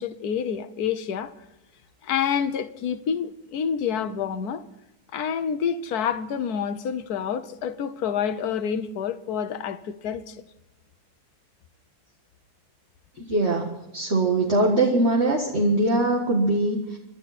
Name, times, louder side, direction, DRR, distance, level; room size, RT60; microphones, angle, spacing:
voice 1, 0.0-1.3 2.0-4.6 5.1-10.4, left 7 dB, 70° left, 1.4 m, -28 dB
voice 2, 13.2-17.0, right 2 dB, 40° right, 2.0 m, -22 dB
26.5 x 12.0 x 4.3 m
omnidirectional pair, 1.7 m